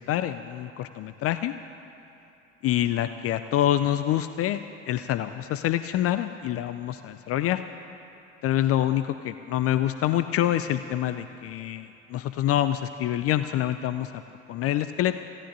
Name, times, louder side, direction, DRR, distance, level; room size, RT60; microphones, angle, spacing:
voice 1, 0.0-1.6 2.6-4.6 4.9-7.6 8.4-14.1 14.5-15.2, left 12 dB, 40° left, 11 dB, 0.5 m, -26 dB
27.5 x 16.5 x 2.7 m, 2.8 s
figure-of-eight pair, 60°, 37 cm